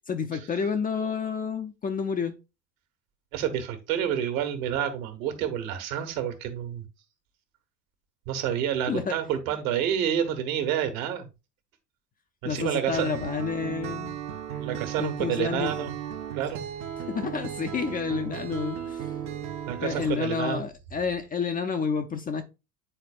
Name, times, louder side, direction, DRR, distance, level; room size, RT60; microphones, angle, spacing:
voice 1, 0.1-2.3 8.9-9.2 12.4-14.2 15.0-15.9 17.1-19.1 19.8-22.4, left 6 dB, 20° left, 0.6 m, -30 dB
voice 2, 3.3-6.8 8.3-11.3 12.4-13.1 14.6-15.9 16.3-16.6 19.7-20.6, right 9 dB, 60° right, 1.5 m, -29 dB
Acoustic guitar, 12.9-20.1, right 9 dB, 35° right, 0.9 m, -36 dB
10.0 x 4.1 x 2.4 m
figure-of-eight pair, 75°, 47 cm